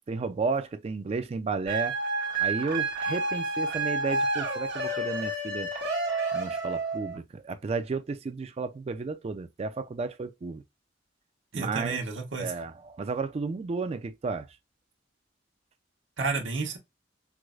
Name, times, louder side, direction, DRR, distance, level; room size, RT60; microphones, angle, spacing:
voice 1, 0.1-2.0 2.4-5.7 6.3-10.6 11.5-12.0 12.4-14.5, right 4 dB, 35° right, 0.3 m, -32 dB
sound 1, 1.7-7.2, right 2 dB, 60° right, 1.1 m, -30 dB
voice 2, 11.5-12.5 16.2-16.8, right 4 dB, 80° right, 1.0 m, -31 dB
4.6 x 2.1 x 2.3 m
head